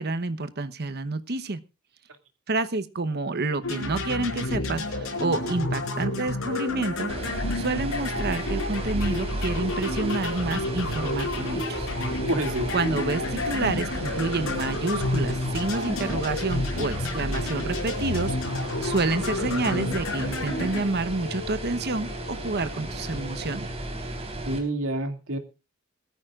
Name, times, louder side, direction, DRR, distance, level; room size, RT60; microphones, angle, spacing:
voice 1, 0.0-1.6 2.5-7.1 7.5-11.9 12.7-18.4 18.8-23.7, right 3 dB, 50° right, 12 dB, 1.0 m, -28 dB
sound 1, 3.6-20.8, left 2 dB, 90° left, 5.0 m, -30 dB
sound 2, 7.1-24.6, right 1 dB, 30° right, 3.8 m, -35 dB
sound 3, 12.0-23.6, left 2 dB, 60° left, 5.3 m, -43 dB
voice 2, 12.3-12.7 24.5-25.4, right 1 dB, 70° right, 6 dB, 2.4 m, -27 dB
21.5 x 14.0 x 2.4 m, 0.29 s
head